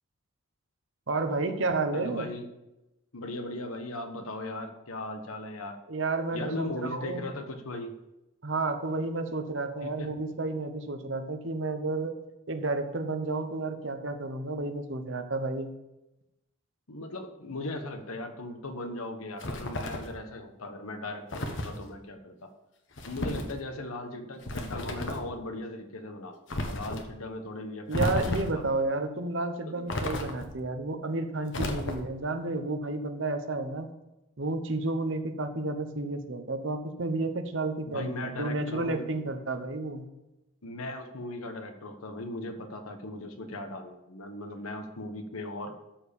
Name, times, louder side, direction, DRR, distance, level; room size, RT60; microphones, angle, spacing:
voice 1, 1.1-2.3 5.9-7.2 8.4-12.1 12.5-15.7 27.9-33.9 34.4-40.0, right 2 dB, 60° right, 7 dB, 1.0 m, -31 dB
voice 2, 1.9-2.4 3.1-5.8 6.3-8.0 9.8-10.1 16.9-22.5 23.0-28.6 29.6-29.8 37.9-39.0 40.6-45.7, left 2 dB, 80° left, 6 dB, 1.3 m, -38 dB
sound 1, 19.4-20.2 21.3-21.8 23.0-23.5 24.4-25.3 26.5-27.0 27.9-28.7 29.9-30.6 31.5-32.2, left 1 dB, 55° left, 1.2 m, -33 dB
13.0 x 4.6 x 7.1 m, 0.97 s
head